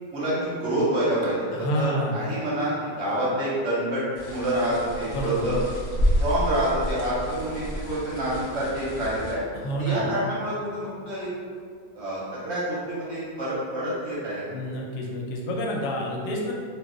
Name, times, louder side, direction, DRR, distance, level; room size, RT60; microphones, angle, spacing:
voice 1, 0.1-4.0 4.3-5.6 6.2-9.4 9.8-11.3 11.9-14.4, right 1 dB, 55° right, -8 dB, 0.8 m, -27 dB
voice 2, 1.5-2.2 5.0-5.5 9.5-10.1 14.5-16.5, equal, 90° left, -1 dB, 1.1 m, -29 dB
sound 1, 4.1-9.3, equal, 60° left, 0.6 m, -30 dB
2.4 x 2.3 x 3.6 m, 2.1 s
omnidirectional pair, 1.7 m